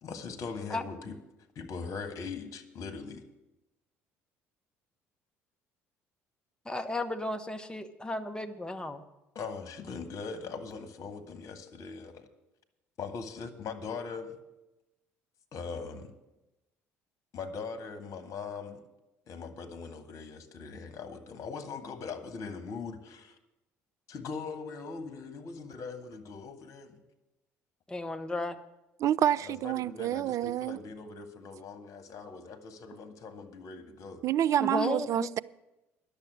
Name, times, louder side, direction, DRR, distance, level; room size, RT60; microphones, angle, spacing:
voice 1, 0.0-1.2 1.5-3.2 9.3-12.3 13.0-14.4 15.5-16.1 17.3-18.8 19.3-23.3 24.1-27.0 29.4-34.2, left 5 dB, 50° left, 1.5 m, -41 dB
voice 2, 6.7-9.0 27.9-28.6 34.6-35.3, left 2 dB, 10° left, 1.0 m, -34 dB
voice 3, 29.0-30.8 34.2-35.4, right 11 dB, 50° right, 0.4 m, -28 dB
10.5 x 7.0 x 9.2 m
hypercardioid pair, 55°, 7 cm